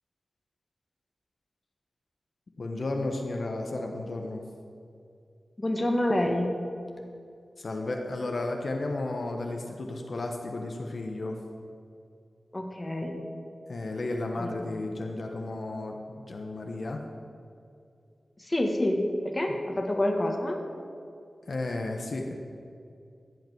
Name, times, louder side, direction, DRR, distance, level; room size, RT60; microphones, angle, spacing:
voice 1, 2.6-4.4 7.6-11.4 13.7-17.0 21.4-22.3, left 2 dB, 55° left, 2 dB, 1.2 m, -33 dB
voice 2, 5.6-6.6 12.5-13.2 14.4-14.8 18.4-20.6, left 1 dB, 20° left, 2 dB, 1.6 m, -28 dB
15.0 x 5.9 x 9.5 m, 2.4 s
wide cardioid pair, 100°, 0 cm